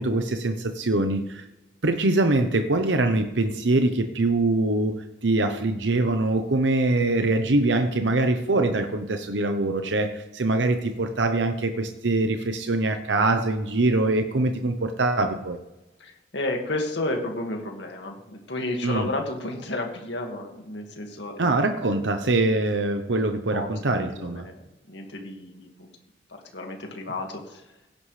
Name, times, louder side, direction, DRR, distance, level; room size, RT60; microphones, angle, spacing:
voice 1, 0.0-1.4 1.8-5.0 5.2-15.6 18.8-19.1 21.4-24.4, right 2 dB, 85° right, 7 dB, 0.9 m, -23 dB
voice 2, 16.0-21.6 23.5-25.9 26.5-27.6, left 2 dB, 80° left, 2 dB, 2.0 m, -32 dB
17.0 x 10.5 x 3.3 m, 1.0 s
head